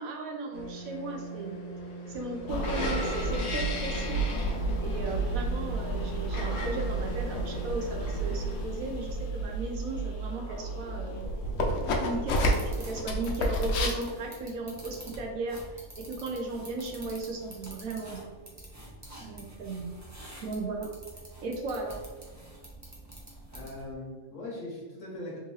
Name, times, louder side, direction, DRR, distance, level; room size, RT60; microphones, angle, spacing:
voice 1, 0.0-1.6 2.1-4.2 4.8-11.3 12.0-18.3 19.2-19.9 20.4-20.9 21.4-22.0, right 3 dB, 75° right, 1 dB, 1.1 m, -36 dB
sound 1, 0.5-8.7, equal, 45° left, 0.5 m, -38 dB
sound 2, 2.5-13.9, right 1 dB, 85° left, 1.1 m, -31 dB
sound 3, 12.3-23.9, right 1 dB, 20° right, 0.4 m, -46 dB
voice 2, 19.2-19.5 23.5-25.4, left 1 dB, 60° left, -4 dB, 1.3 m, -41 dB
3.6 x 2.7 x 3.1 m, 1.5 s
omnidirectional pair, 1.5 m